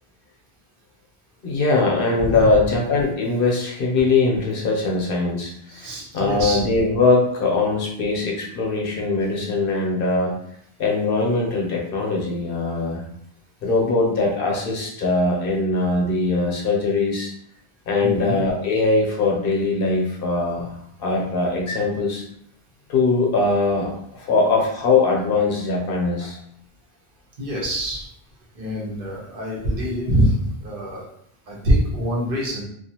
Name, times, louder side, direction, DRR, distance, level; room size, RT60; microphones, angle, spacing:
voice 1, 1.4-10.3 10.8-13.0 13.6-17.3 17.9-20.7 21.0-22.2 22.9-26.4, left 3 dB, 65° left, -1 dB, 0.8 m, -21 dB
voice 2, 2.2-2.5 5.7-6.6 18.0-18.4 26.2-26.3 27.4-28.0 28.6-31.0 31.5-32.6, equal, 65° right, -3 dB, 0.9 m, -24 dB
2.4 x 2.4 x 2.7 m, 0.70 s
omnidirectional pair, 1.0 m